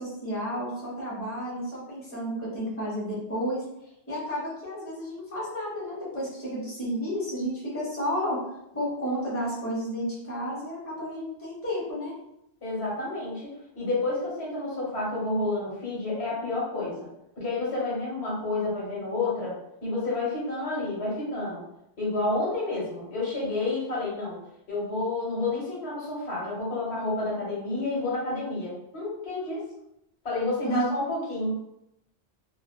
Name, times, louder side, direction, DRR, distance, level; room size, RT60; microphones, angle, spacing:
voice 1, 0.0-3.6 4.1-8.4 8.7-12.1 30.6-30.8, equal, 15° left, -6 dB, 0.8 m, -31 dB
voice 2, 12.6-17.1 17.4-19.6 19.8-21.6 22.0-24.4 24.7-29.7 30.2-31.5, left 2 dB, 80° left, -5 dB, 1.2 m, -30 dB
2.5 x 2.4 x 2.2 m, 0.81 s
omnidirectional pair, 1.1 m